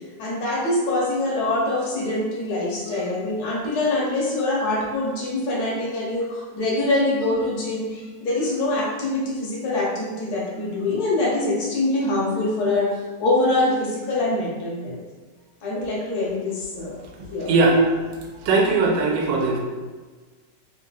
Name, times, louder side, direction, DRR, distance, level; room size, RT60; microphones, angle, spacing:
voice 1, 0.2-12.9 13.2-15.0 15.6-17.0 17.3-17.5, left 2 dB, 65° left, -4 dB, 1.2 m, -24 dB
voice 2, 17.5-17.8 18.4-19.6, right 3 dB, 85° right, 0 dB, 1.3 m, -19 dB
3.3 x 2.6 x 2.2 m, 1.4 s
omnidirectional pair, 2.0 m